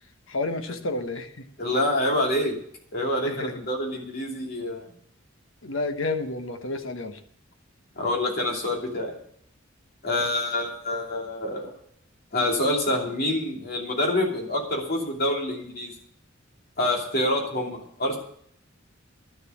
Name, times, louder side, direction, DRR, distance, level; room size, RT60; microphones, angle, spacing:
voice 1, 0.3-1.5 3.2-3.7 5.6-7.2, left 2 dB, 75° left, 8 dB, 1.1 m, -30 dB
voice 2, 1.6-2.6 2.9-4.8 8.0-9.1 10.0-11.7 12.3-15.9 16.8-18.2, left 1 dB, 50° left, 0 dB, 2.8 m, -26 dB
11.5 x 7.1 x 8.5 m, 0.66 s
head